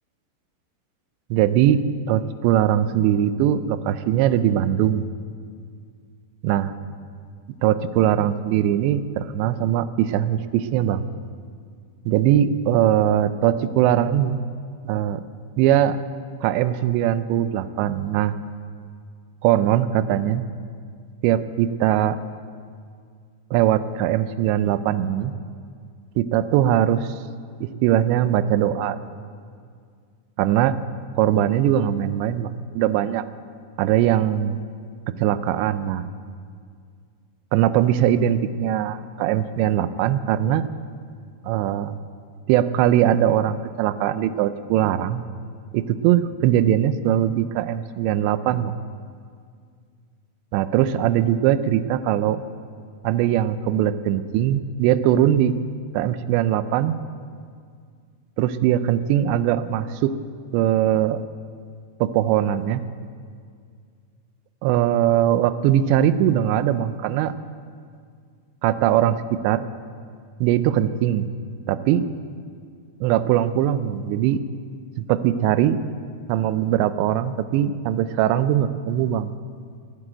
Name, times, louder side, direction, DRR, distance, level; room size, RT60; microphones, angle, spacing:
voice 1, 1.3-1.8 2.1-5.0 6.4-6.7 7.6-11.0 12.1-14.4 14.8-15.2 15.6-16.0 16.4-18.3 19.4-20.4 21.2-22.2 23.5-25.3 26.2-27.2 27.6-29.0 30.4-30.8 31.2-33.2 33.8-34.6 35.1-36.0 37.5-40.6 41.5-41.9 42.5-45.2 45.7-48.7 50.5-52.4 53.0-55.6 55.9-57.0 58.4-60.1 60.5-61.2 62.0-62.8 64.6-67.3 68.6-69.7 70.4-71.3 71.7-72.1 73.0-74.4 75.0-75.8 76.3-79.3, right 11 dB, 80° right, 13 dB, 2.7 m, -21 dB
18.0 x 8.0 x 8.9 m, 2.1 s
omnidirectional pair, 5.4 m